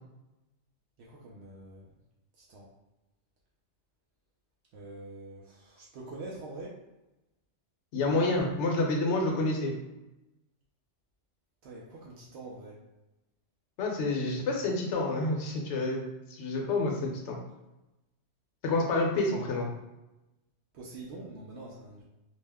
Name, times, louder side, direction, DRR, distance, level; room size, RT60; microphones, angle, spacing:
voice 1, 1.0-1.9 2.4-2.7 4.7-6.8 11.6-12.8 20.7-22.0, right 2 dB, 70° right, -4 dB, 0.8 m, -45 dB
voice 2, 7.9-9.7 13.8-17.4 18.6-19.7, left 2 dB, 75° left, 0 dB, 1.0 m, -28 dB
2.8 x 2.1 x 3.4 m, 0.97 s
omnidirectional pair, 1.2 m